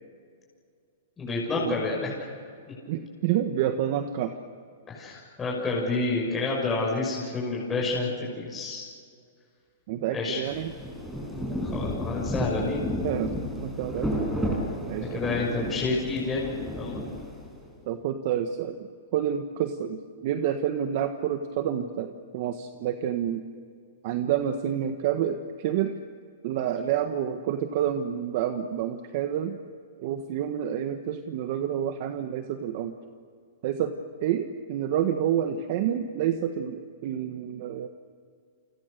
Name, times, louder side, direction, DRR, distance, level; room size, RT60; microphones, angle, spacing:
voice 1, 1.2-2.3 4.9-8.8 10.1-10.4 11.3-12.9 14.9-17.0, left 3 dB, 15° left, -4 dB, 6.5 m, -29 dB
voice 2, 2.9-4.4 9.9-10.7 13.0-14.3 14.8-15.3 17.9-23.4 24.0-25.9 26.4-29.6 30.0-32.9 33.6-37.9, right 10 dB, 50° right, 7 dB, 1.5 m, -29 dB
Rain, 10.5-17.7, equal, 5° right, 6.1 m, -32 dB
30.0 x 26.0 x 6.8 m, 2.2 s
hypercardioid pair, 150°, 0 cm